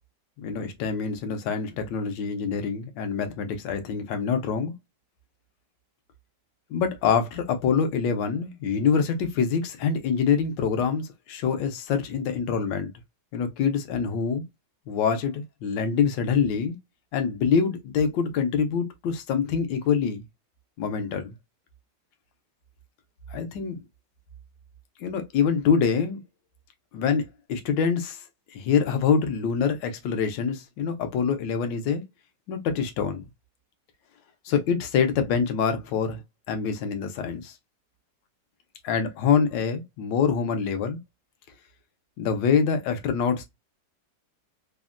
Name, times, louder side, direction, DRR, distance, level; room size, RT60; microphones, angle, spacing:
voice 1, 0.4-4.7 6.7-12.9 13.3-14.4 14.9-16.8 17.1-20.2 20.8-21.3 23.3-23.8 25.0-26.2 26.9-28.2 28.5-32.0 32.5-33.2 34.4-36.2 36.5-37.6 38.8-41.0 42.2-43.4, left 6 dB, 80° left, 1.3 m, -25 dB
3.5 x 2.1 x 2.4 m
omnidirectional pair, 1.9 m